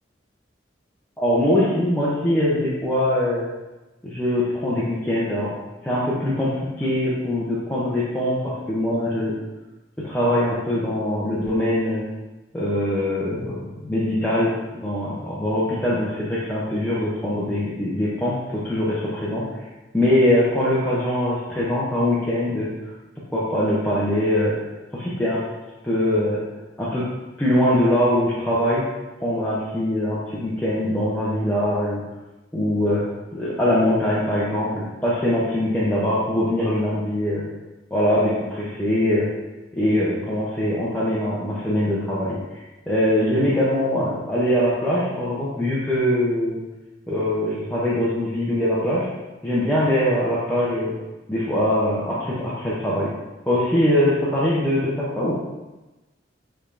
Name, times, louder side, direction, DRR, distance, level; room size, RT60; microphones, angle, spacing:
voice 1, 1.2-3.5 4.0-5.6 5.8-9.3 10.0-12.0 12.5-19.4 19.9-22.7 23.3-24.5 24.9-25.4 25.8-26.4 26.8-27.1 27.4-28.9 29.2-32.0 32.5-33.0 33.3-37.4 37.9-39.3 39.7-42.4 42.9-46.6 47.1-49.1 49.4-50.9 51.3-53.1 53.5-55.3, left 1 dB, 10° left, -9 dB, 0.6 m, -22 dB
5.1 x 3.4 x 2.5 m, 1.1 s
head